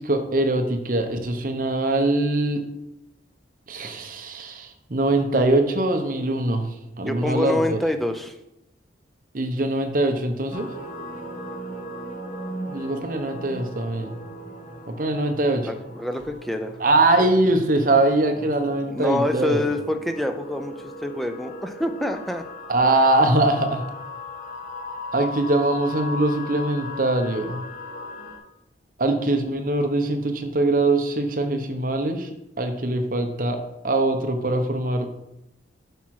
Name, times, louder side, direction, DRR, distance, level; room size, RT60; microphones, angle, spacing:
voice 1, 0.0-2.6 3.7-6.7 7.0-7.8 9.3-10.7 12.7-14.2 14.9-15.7 16.8-19.6 22.7-23.8 25.1-27.6 29.0-32.3 32.6-33.6 33.8-35.2, right 2 dB, 45° right, 6 dB, 0.8 m, -22 dB
voice 2, 7.0-8.4 15.6-16.8 18.9-22.4, left 1 dB, ahead, 6 dB, 0.5 m, -26 dB
sound 1, 10.5-28.4, left 1 dB, 45° left, 1.3 m, -37 dB
8.0 x 5.9 x 4.7 m, 0.87 s
head